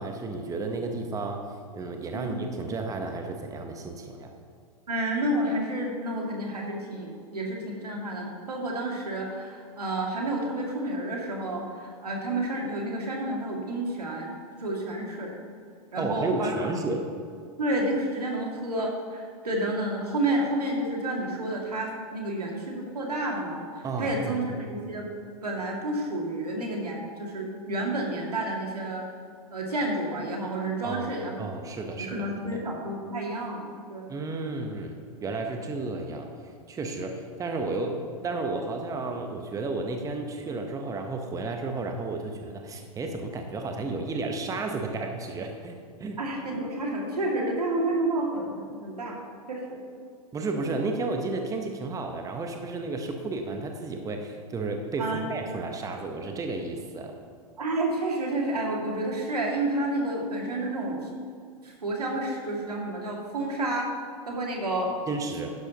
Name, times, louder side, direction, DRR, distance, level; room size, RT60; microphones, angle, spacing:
voice 1, 0.0-1.4 1.7-4.3 15.9-17.1 23.8-24.6 30.8-31.1 31.4-32.6 34.1-36.3 36.7-46.2 50.3-57.1 65.1-65.5, right 3 dB, 15° right, 4 dB, 1.0 m, -32 dB
voice 2, 4.9-14.3 14.6-15.4 15.9-16.5 17.6-23.6 24.0-25.1 25.4-29.0 29.5-31.3 32.1-34.1 46.2-49.2 49.5-49.8 50.6-50.7 55.0-55.3 57.6-61.1 61.6-63.9 64.3-64.9, right 1 dB, 85° right, -1 dB, 2.3 m, -30 dB
12.0 x 10.5 x 3.0 m, 2.2 s
hypercardioid pair, 105°, 19 cm